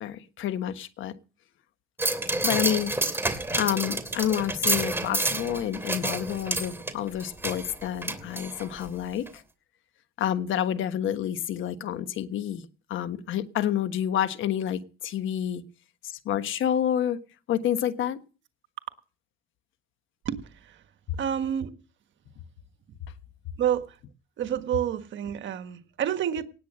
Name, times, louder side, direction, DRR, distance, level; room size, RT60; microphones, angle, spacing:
voice 1, 0.0-1.1 2.4-9.4 10.2-15.6 16.0-17.2 17.5-18.2, left 10 dB, 80° left, 1.3 m, -29 dB
sound 1, 2.0-8.9 9.3-9.4, right 2 dB, 10° right, 2.7 m, -29 dB
voice 2, 20.2-20.8 21.2-21.7 23.6-24.0 24.4-26.4, right 9 dB, 70° right, 1.5 m, -29 dB
18.5 x 8.2 x 6.3 m
cardioid pair, 90°, 20 cm